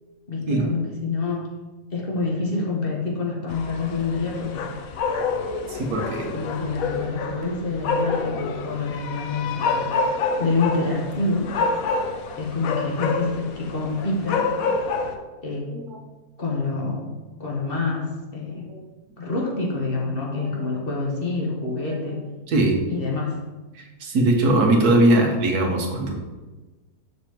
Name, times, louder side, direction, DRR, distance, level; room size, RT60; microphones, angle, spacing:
voice 1, 0.3-1.6 1.9-4.7 6.3-10.1 10.4-11.5 12.4-14.5 15.4-15.7 16.4-18.7 19.2-22.2 22.9-23.4, left 3 dB, 40° left, -3 dB, 1.3 m, -27 dB
sound 1, 3.5-15.2, left 4 dB, 70° left, 1.0 m, -28 dB
voice 2, 5.7-6.3 11.9-12.1 13.2-13.3 15.7-16.0 18.7-18.8 20.4-21.0 21.8-22.1 22.5-22.8 23.8-26.2, right 1 dB, 90° right, 1 dB, 1.6 m, -22 dB
6.9 x 6.2 x 3.0 m, 1.2 s
omnidirectional pair, 1.6 m